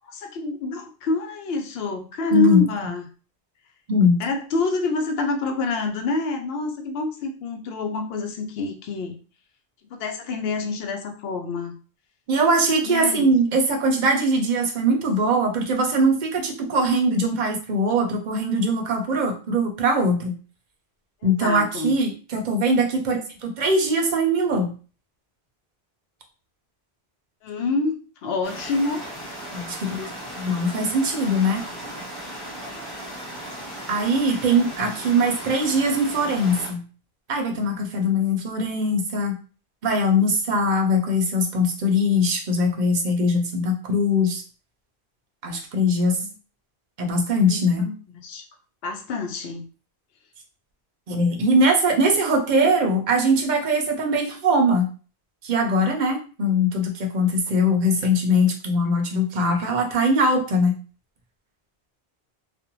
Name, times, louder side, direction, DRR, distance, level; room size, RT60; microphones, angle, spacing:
voice 1, 0.1-3.1 4.2-9.1 9.9-11.7 12.8-13.3 21.2-22.0 27.4-29.1 32.6-32.9 46.2-46.3 47.5-47.9 48.2-48.4 48.8-49.6 59.4-59.6, left 3 dB, 70° left, 4 dB, 0.8 m, -27 dB
voice 2, 2.3-2.6 3.9-4.2 12.3-20.4 21.2-24.7 29.5-30.1 30.3-31.6 33.9-36.8 37.3-39.4 39.8-44.4 45.4-46.2 47.0-47.9 51.1-54.9 55.4-60.7, equal, 55° right, 3 dB, 0.6 m, -21 dB
sound 1, 28.4-36.7, equal, ahead, 0.9 m, -36 dB
2.5 x 2.0 x 2.9 m, 0.37 s
omnidirectional pair, 1.1 m